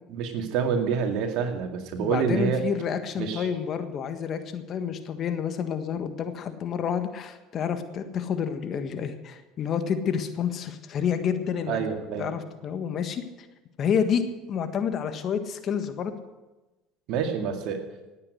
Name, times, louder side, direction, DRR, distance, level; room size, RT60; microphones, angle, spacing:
voice 1, 0.1-2.6 3.2-3.5 11.7-12.3 17.1-17.8, right 6 dB, 65° right, 4 dB, 2.2 m, -27 dB
voice 2, 2.0-11.8 12.2-13.2 13.8-14.2 14.5-16.1, left 7 dB, 45° left, 8 dB, 1.5 m, -29 dB
18.5 x 8.6 x 6.5 m, 1.1 s
supercardioid pair, 85°, 0 cm